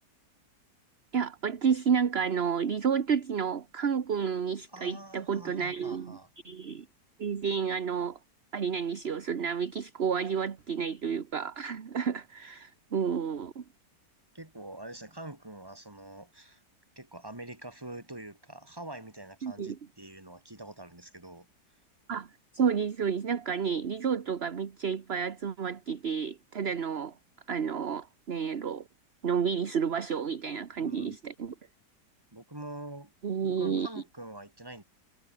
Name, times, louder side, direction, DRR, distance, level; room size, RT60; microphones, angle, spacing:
voice 1, 1.1-6.2 6.4-6.8 7.2-8.2 8.5-13.6 19.4-19.8 22.1-22.3 22.5-27.1 27.5-28.8 29.2-31.5 33.2-33.9, right 6 dB, 40° right, 1.3 m, -30 dB
voice 2, 4.7-6.3 14.3-16.6 17.0-21.5 30.8-31.2 32.3-33.1 33.4-34.8, right 1 dB, 15° right, 3.1 m, -45 dB
omnidirectional pair, 1.8 m